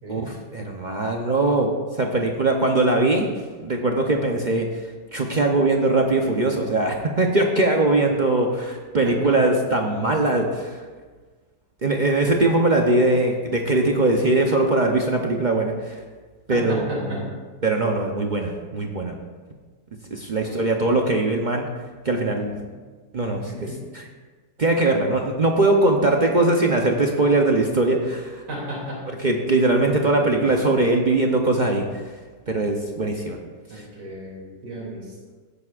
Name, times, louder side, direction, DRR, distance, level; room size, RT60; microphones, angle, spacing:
voice 1, 0.1-3.3 3.6-4.7 5.1-10.8 11.8-16.0 16.5-17.3 17.6-19.1 20.1-21.7 22.0-22.6 23.1-24.1 24.6-28.4 29.2-31.8 32.5-33.4 33.7-33.8, right 2 dB, 50° right, 1 dB, 0.5 m, -21 dB
voice 2, 16.5-17.2 20.4-21.0 23.4-23.8 28.5-29.0 29.8-30.5 33.7-35.3, right 1 dB, 70° right, -4 dB, 3.4 m, -34 dB
16.5 x 9.4 x 2.5 m, 1.4 s
omnidirectional pair, 1.9 m